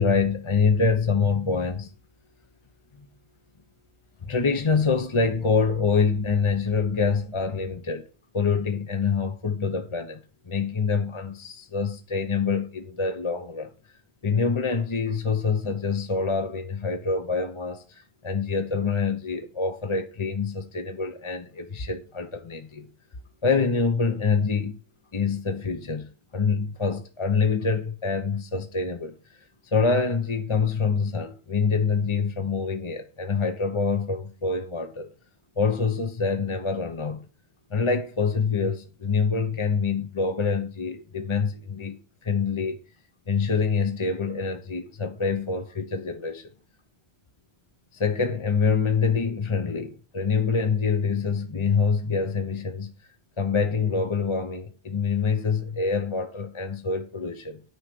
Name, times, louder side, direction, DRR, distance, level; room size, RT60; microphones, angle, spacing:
voice 1, 0.0-1.9 3.0-3.1 4.2-8.1 8.3-10.2 10.5-13.7 14.2-22.9 23.4-24.8 25.1-29.1 29.7-35.1 35.6-37.3 37.7-42.0 42.2-42.8 43.3-46.5 47.9-52.9 53.4-57.6, left 5 dB, 30° left, 0.8 m, -25 dB
9.8 x 4.9 x 6.0 m
omnidirectional pair, 1.1 m